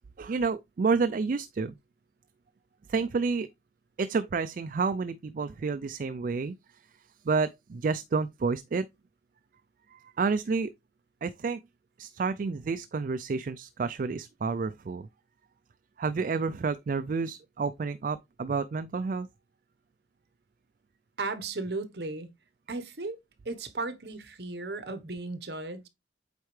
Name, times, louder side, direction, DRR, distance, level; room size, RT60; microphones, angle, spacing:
voice 1, 0.2-1.8 2.9-3.5 4.0-6.6 7.2-8.9 9.9-10.7 11.2-11.6 12.0-15.1 16.0-19.3, right 4 dB, 45° right, 0.3 m, -29 dB
voice 2, 21.2-22.3 22.7-23.2 23.4-25.9, right 3 dB, 60° right, 1.1 m, -35 dB
8.2 x 4.3 x 3.2 m
head